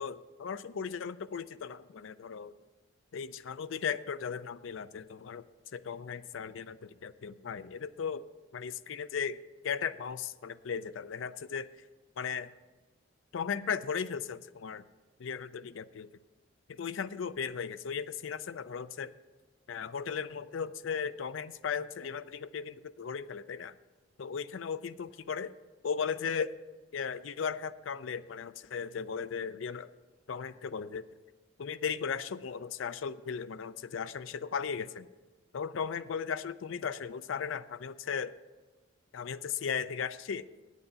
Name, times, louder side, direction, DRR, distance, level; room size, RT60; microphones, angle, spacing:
voice 1, 0.0-2.5 3.1-5.4 5.7-8.3 8.5-11.7 12.2-12.5 13.3-14.8 15.2-16.1 16.7-19.1 19.7-23.7 24.2-25.5 25.8-26.5 26.9-29.9 30.3-31.0 31.6-35.1 35.5-38.3 39.1-40.5, left 6 dB, 75° left, 14 dB, 0.4 m, -36 dB
8.7 x 8.2 x 6.7 m, 1.2 s
head